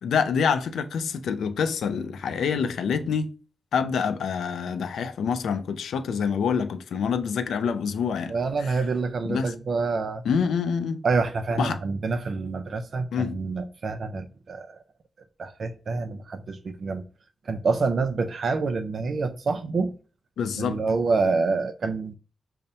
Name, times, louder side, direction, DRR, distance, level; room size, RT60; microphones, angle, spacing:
voice 1, 0.0-3.3 3.7-8.3 8.7-8.8 9.2-9.5 10.3-11.0 11.6-11.8 13.1-13.4 20.4-20.8, left 6 dB, 90° left, 0.3 m, -26 dB
voice 2, 8.3-10.2 11.0-14.8 15.4-17.0 17.5-19.9 20.6-22.2, right 4 dB, 60° right, 0.3 m, -27 dB
5.3 x 2.1 x 2.7 m
cardioid pair, 70°, 0 cm